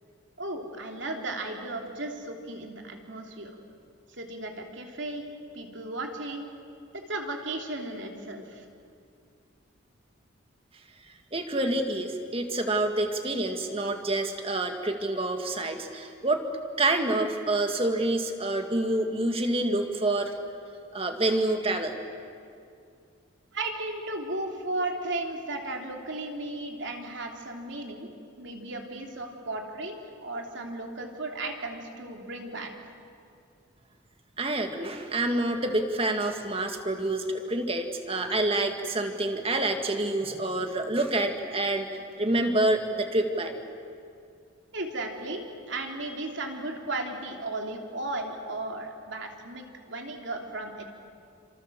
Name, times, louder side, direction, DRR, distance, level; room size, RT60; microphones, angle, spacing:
voice 1, 0.4-3.5 4.2-5.3 5.5-6.5 6.9-8.6 23.5-28.1 28.4-32.7 44.7-45.4 45.7-50.8, right 2 dB, 60° right, 2 dB, 3.3 m, -35 dB
voice 2, 11.3-16.5 16.8-20.3 20.9-21.9 34.4-41.9 42.2-43.6, right 2 dB, 25° right, 5 dB, 2.1 m, -27 dB
29.5 x 26.5 x 7.7 m, 2.4 s
head